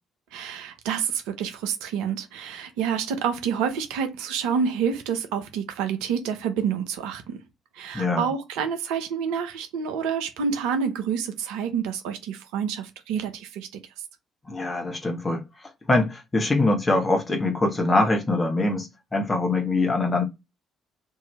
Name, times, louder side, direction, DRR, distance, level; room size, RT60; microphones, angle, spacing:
voice 1, 0.3-7.4 7.8-13.7, right 7 dB, 70° right, 0.7 m, -28 dB
voice 2, 7.9-8.3 14.5-15.4 15.9-20.2, left 2 dB, 25° left, 1.1 m, -23 dB
2.8 x 2.7 x 3.1 m
figure-of-eight pair, 45°, 0 cm